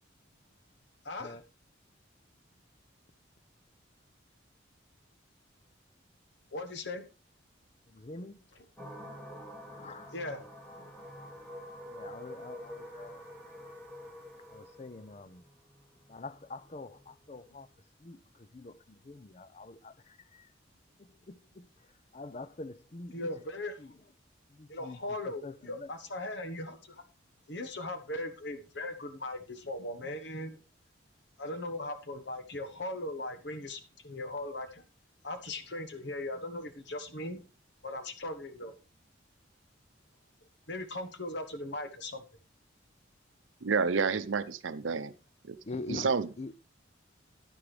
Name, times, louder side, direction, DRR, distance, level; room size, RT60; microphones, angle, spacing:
voice 1, 1.0-1.4 6.5-7.0 10.1-10.4 23.1-23.7 24.7-27.0 27.5-30.6 31.4-34.8 35.2-37.4 37.8-38.7 40.7-42.2, left 1 dB, 65° left, 1.2 m, -38 dB
voice 2, 7.9-8.4 9.7-10.1 11.9-13.2 14.5-15.4 16.1-17.7 18.0-20.5 21.0-21.7 22.1-23.3 23.8-23.9 24.5-25.0 25.4-25.9 45.6-46.5, left 3 dB, 35° left, 0.5 m, -45 dB
sound 1, 8.8-17.7, equal, 10° left, 2.6 m, -47 dB
voice 3, 43.6-45.1 45.5-45.6 45.9-46.3, right 5 dB, 85° right, 0.6 m, -29 dB
9.9 x 9.9 x 3.3 m
head